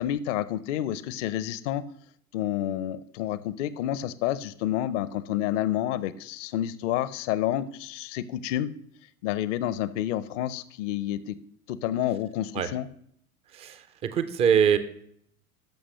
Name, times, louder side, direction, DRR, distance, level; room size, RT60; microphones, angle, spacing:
voice 1, 0.0-1.8 2.3-8.7 9.2-11.4 11.7-12.9, left 12 dB, 50° left, 16 dB, 0.6 m, -29 dB
voice 2, 13.5-14.8, right 8 dB, 15° right, 11 dB, 0.3 m, -23 dB
13.5 x 6.2 x 3.1 m, 0.68 s
figure-of-eight pair, 85°, 46 cm